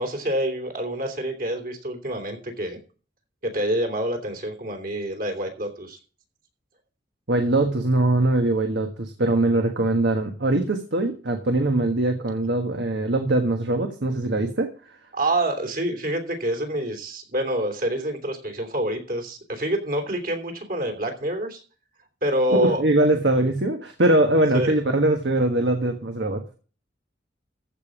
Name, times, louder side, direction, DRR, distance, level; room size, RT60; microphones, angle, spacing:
voice 1, 0.0-2.8 3.4-6.0 15.1-21.6 22.2-22.8 24.5-24.8, right 1 dB, 50° right, 4 dB, 3.1 m, -27 dB
voice 2, 7.3-14.7 22.5-26.6, right 1 dB, 65° right, 5 dB, 1.5 m, -22 dB
14.5 x 5.2 x 7.3 m, 0.37 s
head